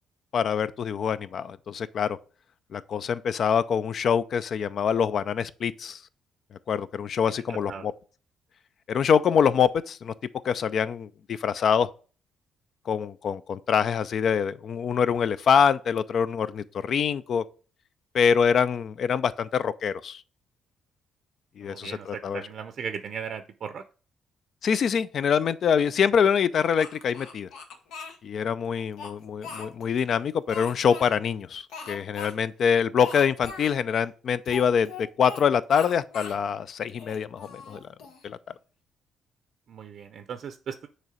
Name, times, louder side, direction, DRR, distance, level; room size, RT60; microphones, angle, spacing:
voice 1, 0.3-2.2 2.7-6.0 6.7-7.9 8.9-10.1 10.4-11.9 12.9-17.4 18.1-20.2 21.6-22.4 24.6-27.5 28.2-37.8 38.2-38.4, left 7 dB, 60° left, 0.4 m, -25 dB
voice 2, 7.5-7.9 21.6-23.8 39.7-40.9, right 7 dB, 60° right, 0.5 m, -37 dB
Speech, 26.8-28.2 28.7-30.0 30.5-31.1 31.7-32.3 32.6-32.7 33.0-33.7 34.4-35.4 35.7-36.4 36.9-38.3, left 4 dB, 85° left, 1.0 m, -40 dB
6.5 x 3.1 x 4.9 m
cardioid pair, 90°, 0 cm